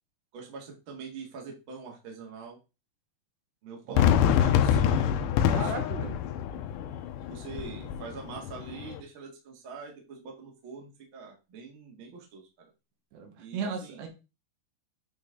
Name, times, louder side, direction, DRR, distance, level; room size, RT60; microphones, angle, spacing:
voice 1, 0.3-2.6 3.6-5.7 7.3-12.7 13.4-14.0, right 5 dB, 45° right, 1 dB, 1.7 m, -44 dB
Fireworks, 4.0-9.0, left 9 dB, 85° left, 2.8 m, -26 dB
voice 2, 5.5-6.2 13.1-14.1, right 5 dB, 80° right, 4 dB, 3.5 m, -36 dB
9.2 x 4.2 x 3.7 m, 0.29 s
omnidirectional pair, 5.0 m